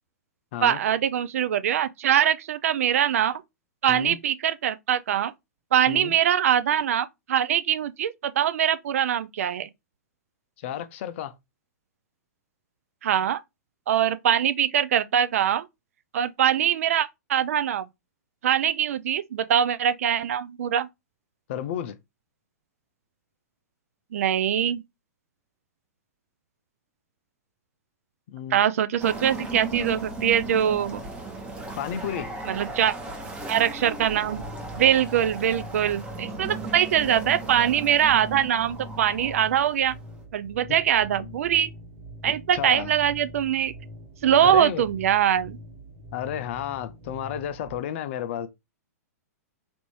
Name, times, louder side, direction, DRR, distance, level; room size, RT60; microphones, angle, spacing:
voice 1, 0.6-3.4 3.8-5.3 5.7-9.7 13.0-13.4 13.9-15.6 16.1-17.9 18.4-20.9 24.1-24.8 28.5-31.0 32.5-32.9 33.5-34.4 34.8-39.9 40.3-41.7 42.2-43.7 44.2-45.6, right 10 dB, 60° right, 0.4 m, -23 dB
voice 2, 3.9-4.2 5.9-6.1 10.6-11.3 21.5-22.0 28.3-28.7 31.8-32.3 40.7-40.8 41.2-41.3 42.2-42.9 44.4-44.8 46.1-48.5, left 10 dB, 50° left, 0.5 m, -32 dB
sound 1, 29.0-40.2, right 2 dB, 10° right, 0.8 m, -37 dB
sound 2, 34.3-47.8, right 1 dB, 45° right, 1.2 m, -43 dB
3.3 x 2.6 x 3.1 m
figure-of-eight pair, 110°, 9 cm